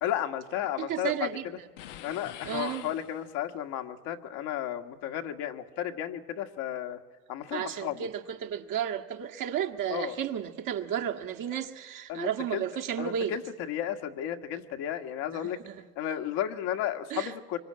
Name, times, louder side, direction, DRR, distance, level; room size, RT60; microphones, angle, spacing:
voice 1, 0.0-1.3 2.0-7.0 7.3-8.1 9.9-10.2 12.1-12.7 13.0-15.6 16.0-17.6, left 11 dB, 70° left, 5 dB, 1.7 m, -33 dB
voice 2, 0.8-1.5 2.5-2.9 7.5-13.3 15.3-15.8 17.1-17.3, right 9 dB, 60° right, 4 dB, 1.9 m, -33 dB
sound 1, 1.8-3.6, left 11 dB, 85° left, 1.1 m, -45 dB
25.0 x 22.5 x 8.8 m, 1.3 s
hypercardioid pair, 65°, 37 cm